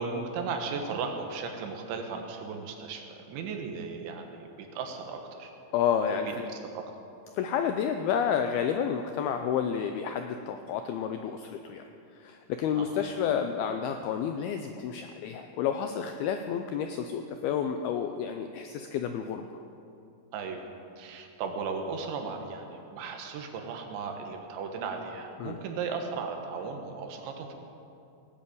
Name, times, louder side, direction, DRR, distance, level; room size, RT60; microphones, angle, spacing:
voice 1, 0.0-5.5 6.1-6.8 12.8-13.0 20.3-20.6 21.0-27.5, right 5 dB, 90° right, 4 dB, 3.8 m, -36 dB
voice 2, 5.7-6.5 7.4-11.8 12.2-19.5 25.4-25.6, left 8 dB, 90° left, 6 dB, 2.2 m, -30 dB
18.0 x 8.2 x 8.5 m, 2.7 s
omnidirectional pair, 5.1 m